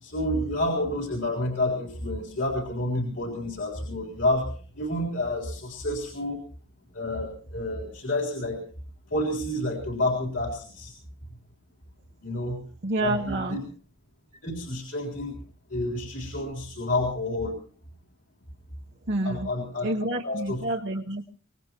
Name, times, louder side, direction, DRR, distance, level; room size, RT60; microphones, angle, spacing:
voice 1, 0.0-6.4 6.9-8.6 9.1-11.0 12.2-12.6 13.0-13.6 14.4-15.4 15.7-17.6 19.2-19.9 20.2-20.6, left 1 dB, 60° left, 0 dB, 3.7 m, -29 dB
voice 2, 12.8-13.6 19.1-19.5 19.8-21.2, right 2 dB, 55° right, 1 dB, 1.1 m, -28 dB
24.0 x 19.0 x 3.0 m, 0.40 s
head